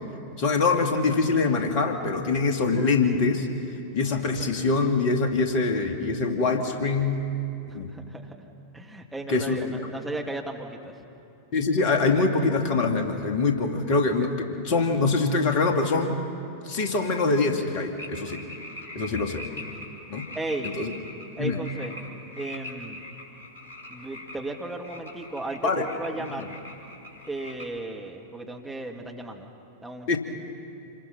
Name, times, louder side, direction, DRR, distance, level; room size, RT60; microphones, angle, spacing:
voice 1, 0.4-3.5 3.9-7.2 7.7-7.9 9.3-9.7 11.5-16.2 16.6-18.4 18.9-19.4 20.1-20.2 20.6-20.9 21.4-21.6 25.6-25.8 30.1-30.2, left 3 dB, 45° left, 4 dB, 2.4 m, -24 dB
voice 2, 7.7-8.4 8.7-11.0 19.0-19.7 20.3-20.7 21.4-22.0 22.4-23.0 23.9-26.5 27.3-29.5 29.8-30.2, right 2 dB, 5° right, 1 dB, 2.0 m, -35 dB
sound 1, 18.0-27.8, left 1 dB, 90° right, 3.9 m, -42 dB
28.0 x 23.0 x 6.0 m, 2.7 s
figure-of-eight pair, 90°, 0 cm